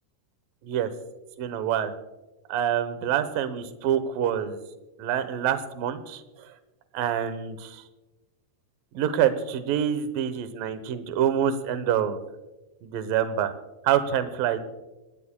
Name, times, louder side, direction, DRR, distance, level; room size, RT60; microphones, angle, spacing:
voice 1, 1.4-1.9 2.5-4.6 5.0-6.2 6.9-7.8 8.9-12.2 12.8-13.5 13.8-14.6, right 9 dB, 75° right, 11 dB, 2.2 m, -26 dB
26.5 x 19.5 x 2.3 m, 1.1 s
omnidirectional pair, 5.1 m